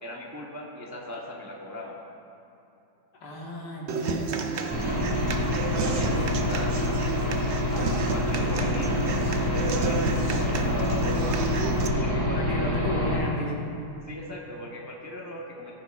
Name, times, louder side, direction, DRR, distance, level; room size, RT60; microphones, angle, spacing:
voice 1, 0.0-2.0 5.4-7.4 7.7-11.3 11.9-12.7 14.1-15.7, left 1 dB, 15° right, -3 dB, 0.6 m, -38 dB
voice 2, 3.2-4.5 12.3-13.6, equal, 70° left, -3 dB, 2.1 m, -33 dB
Human voice / Acoustic guitar, 3.9-11.9, right 4 dB, 65° right, 0.6 m, -32 dB
Aircraft / Engine, 4.7-13.2, left 1 dB, 15° left, 1.8 m, -26 dB
15.5 x 9.9 x 2.5 m, 2.8 s
omnidirectional pair, 1.9 m